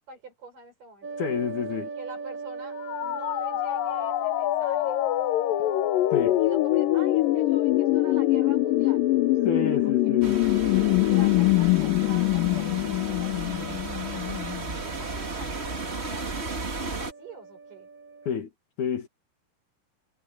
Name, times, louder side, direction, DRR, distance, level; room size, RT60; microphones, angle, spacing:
voice 1, 0.1-1.1 1.9-5.0 6.4-9.0 9.7-10.2 11.0-14.5 14.8-17.9, right 3 dB, 70° right, 8.7 m, -46 dB
sound 1, 1.0-18.3, right 4 dB, 50° right, 0.9 m, -41 dB
voice 2, 1.2-1.9 6.1-6.4 9.4-10.3 18.3-18.5 18.8-19.1, left 6 dB, 60° left, 3.2 m, -29 dB
sound 2, 2.8-14.6, left 18 dB, 85° left, 2.4 m, -24 dB
sound 3, 10.2-17.1, right 3 dB, 25° right, 1.7 m, -34 dB
omnidirectional pair, 3.9 m